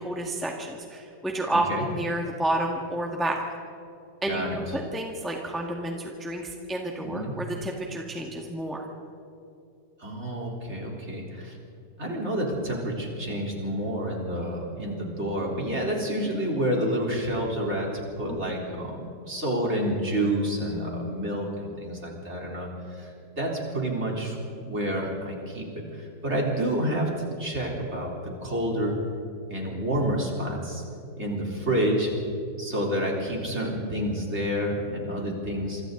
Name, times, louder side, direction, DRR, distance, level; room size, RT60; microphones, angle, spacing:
voice 1, 0.0-3.4 4.2-8.9 18.3-18.4, right 1 dB, ahead, 0 dB, 1.9 m, -30 dB
voice 2, 1.5-1.9 4.3-4.6 7.0-7.3 10.0-11.6 12.0-17.9 18.2-27.1 27.4-28.1 28.4-28.9 29.5-30.8 31.2-32.1 32.6-35.8, right 1 dB, 35° right, -2 dB, 4.3 m, -29 dB
27.0 x 25.0 x 4.0 m, 2.7 s
omnidirectional pair, 1.9 m